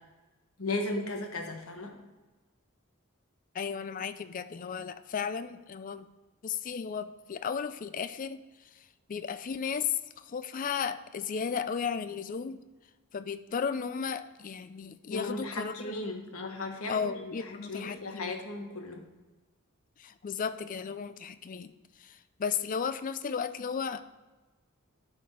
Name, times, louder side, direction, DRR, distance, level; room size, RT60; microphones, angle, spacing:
voice 1, 0.6-2.0 15.1-17.1 17.5-19.0, left 2 dB, 75° left, 3 dB, 1.3 m, -36 dB
voice 2, 3.5-6.1 6.4-8.4 9.1-12.6 13.1-15.9 16.9-18.4 20.0-21.7 22.0-24.0, left 6 dB, 40° left, 12 dB, 0.4 m, -34 dB
11.5 x 4.3 x 4.7 m, 1.2 s
head